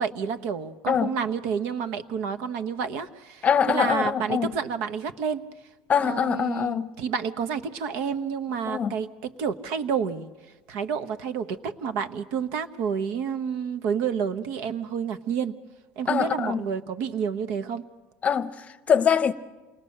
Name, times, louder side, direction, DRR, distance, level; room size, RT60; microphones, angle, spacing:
voice 1, 0.0-5.5 6.0-10.3 10.7-15.6 16.0-17.8, right 7 dB, 75° right, 1.2 m, -29 dB
voice 2, 3.4-4.5 5.9-6.9 8.7-8.9 16.1-16.6 18.2-19.3, left 7 dB, 30° left, 0.8 m, -23 dB
28.5 x 20.0 x 6.6 m
cardioid pair, 135°, 5 cm